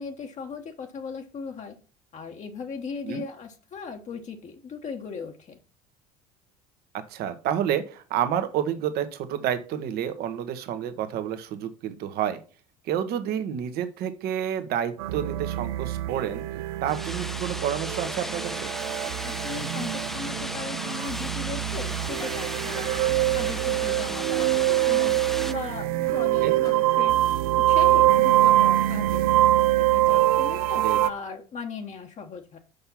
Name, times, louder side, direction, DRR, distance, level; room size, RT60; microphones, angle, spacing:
voice 1, 0.0-1.8 2.1-5.6 19.2-22.9 23.3-25.2 25.5-27.2 27.6-29.5 29.7-32.6, left 5 dB, 40° left, 3 dB, 1.3 m, -38 dB
voice 2, 7.1-12.4 12.8-16.4 16.8-18.7 26.4-26.6 30.8-31.0, right 9 dB, 55° right, 10 dB, 1.3 m, -29 dB
sound 1, 15.0-31.1, right 14 dB, 70° right, 0.5 m, -24 dB
sound 2, 16.9-25.5, equal, ahead, 0.7 m, -35 dB
sound 3, 21.4-21.9 22.2-22.5 22.9-23.1 23.5-23.6 24.4-24.8 25.9-26.0 26.6-27.1, left 5 dB, 20° left, 1.1 m, -46 dB
6.6 x 5.6 x 5.7 m, 0.38 s
hypercardioid pair, 70°, 19 cm